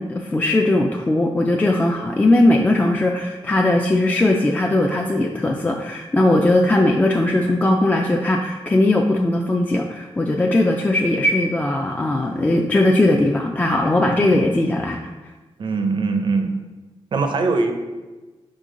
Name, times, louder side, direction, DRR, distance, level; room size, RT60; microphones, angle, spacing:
voice 1, 0.0-15.0, left 1 dB, 15° left, 1 dB, 0.3 m, -19 dB
voice 2, 14.1-14.4 15.6-16.6 17.1-17.7, right 3 dB, 55° right, 6 dB, 0.6 m, -22 dB
5.2 x 4.8 x 3.7 m, 1.2 s
wide cardioid pair, 140°, 10 cm